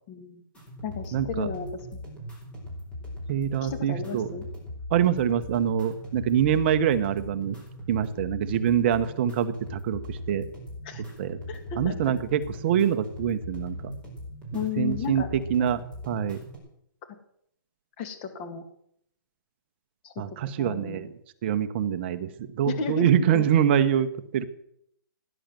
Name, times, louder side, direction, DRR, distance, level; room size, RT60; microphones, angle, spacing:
voice 1, 0.1-0.4 0.8-2.0 3.6-4.5 10.8-11.0 11.5-12.0 14.5-15.3 18.0-18.6 20.0-20.2 20.6-21.1 22.7-23.4, left 6 dB, 25° left, 8 dB, 2.1 m, -33 dB
sound 1, 0.5-16.6, equal, 10° left, 4.8 m, -39 dB
voice 2, 1.1-1.5 3.3-4.3 4.9-7.6 7.9-10.4 11.2-11.4 11.8-13.9 14.8-15.2 15.5-15.8 16.1-16.4 20.2-21.1 21.4-24.5, right 9 dB, 30° right, 11 dB, 0.9 m, -25 dB
17.0 x 10.5 x 7.6 m, 0.70 s
hypercardioid pair, 165°, 12 cm